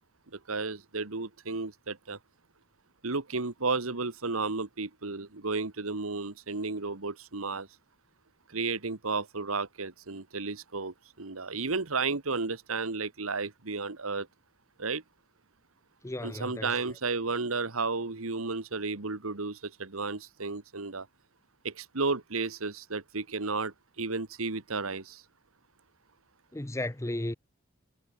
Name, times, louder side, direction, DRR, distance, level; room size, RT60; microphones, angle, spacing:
voice 1, 0.3-2.2 3.0-7.7 8.5-14.3 14.8-15.0 16.2-21.1 21.6-25.2, right 4 dB, 75° right, 1.6 m, -33 dB
voice 2, 16.0-16.8 26.5-27.3, left 1 dB, 15° left, 0.9 m, -34 dB
head